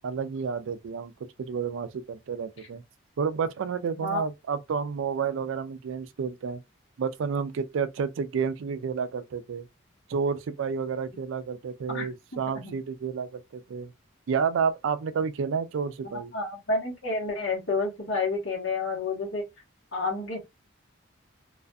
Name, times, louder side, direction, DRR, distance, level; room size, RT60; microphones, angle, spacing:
voice 1, 0.0-2.8 3.2-6.6 7.0-9.7 10.1-13.9 14.3-16.3, right 6 dB, 75° right, 0.4 m, -30 dB
voice 2, 11.9-12.7 16.3-19.4 19.9-20.4, left 3 dB, 70° left, 1.2 m, -30 dB
2.4 x 2.4 x 2.2 m
head